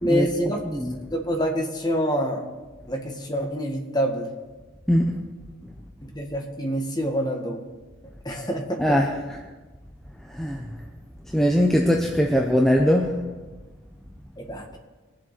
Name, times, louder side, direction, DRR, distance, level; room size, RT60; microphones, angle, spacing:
voice 1, 0.0-0.6 1.1-2.5 2.9-4.3 6.0-7.6 8.2-9.0 14.4-14.8, equal, 20° left, 2 dB, 1.5 m, -26 dB
voice 2, 0.6-1.0 4.9-5.2 8.8-9.4 10.3-10.7 11.3-13.2, equal, ahead, 0 dB, 0.8 m, -21 dB
22.5 x 7.6 x 4.2 m, 1.2 s
head